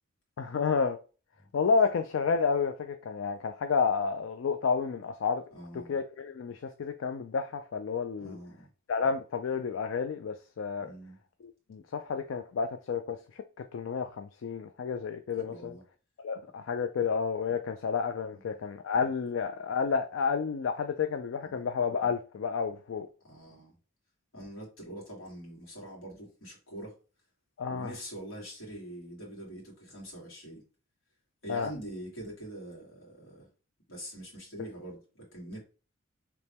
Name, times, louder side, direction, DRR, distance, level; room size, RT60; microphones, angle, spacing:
voice 1, 0.4-1.0 1.5-5.4 5.7-8.4 8.9-10.9 11.7-13.4 13.7-15.7 16.2-23.1 27.6-27.9 31.5-31.7, left 5 dB, 70° left, 0.4 m, -30 dB
voice 2, 5.5-6.0 8.2-8.7 10.8-11.2 15.3-15.8 18.3-18.6 21.4-21.6 23.2-23.7 24.3-26.9 27.7-30.6 31.4-33.5 33.9-35.6, right 1 dB, 85° left, 1.8 m, -44 dB
4.2 x 3.0 x 3.5 m
head